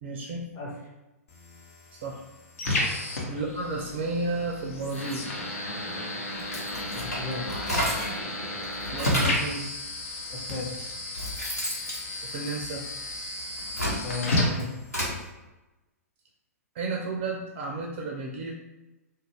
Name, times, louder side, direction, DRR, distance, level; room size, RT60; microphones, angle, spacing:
voice 1, 0.0-0.4 1.9-2.2 3.3-5.3 8.9-9.6 12.2-12.8 16.7-18.5, right 3 dB, 45° right, -1 dB, 0.4 m, -32 dB
sound 1, 1.3-15.3, left 1 dB, 60° left, 0.8 m, -33 dB
sound 2, 6.4-8.2 8.6-9.5 10.3-10.4 10.9-13.0 13.5-15.2, equal, 90° left, 1.1 m, -31 dB
voice 2, 6.9-7.4 8.4-8.6 10.3-10.9 14.0-14.7, left 2 dB, 30° left, -2 dB, 0.7 m, -35 dB
2.4 x 2.1 x 3.1 m, 1.0 s
figure-of-eight pair, 110°, 8 cm